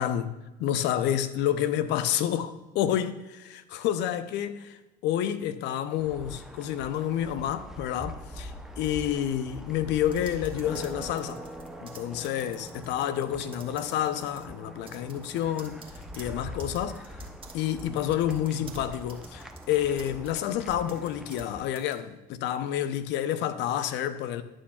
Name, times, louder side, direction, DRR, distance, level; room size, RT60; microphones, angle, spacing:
voice 1, 0.0-11.4 11.8-15.8 16.2-17.0 17.5-24.4, left 10 dB, 60° left, 0.6 m, -29 dB
sound 1, 6.0-21.6, equal, ahead, 0.6 m, -43 dB
sound 2, 10.0-13.3 13.5-14.5 14.9-21.5 21.8-22.0, right 4 dB, 25° right, 1.4 m, -51 dB
11.0 x 6.2 x 2.3 m
hypercardioid pair, 60°, 21 cm